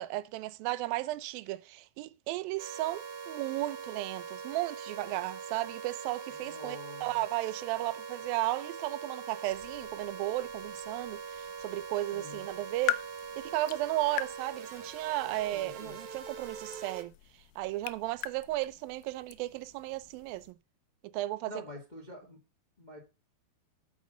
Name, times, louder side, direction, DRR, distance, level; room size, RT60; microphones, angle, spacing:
voice 1, 0.0-13.0 13.4-17.1 17.6-20.6 21.1-21.5, right 17 dB, 80° right, 2.1 m, -34 dB
sound 1, 2.6-17.0, right 6 dB, 65° right, 1.4 m, -43 dB
voice 2, 6.3-7.2 12.1-12.5 15.5-16.0 21.5-22.4 22.8-23.0, left 2 dB, 45° left, 0.6 m, -47 dB
sound 2, 9.5-20.5, left 13 dB, 85° left, 2.0 m, -43 dB
8.6 x 6.3 x 6.5 m
omnidirectional pair, 4.8 m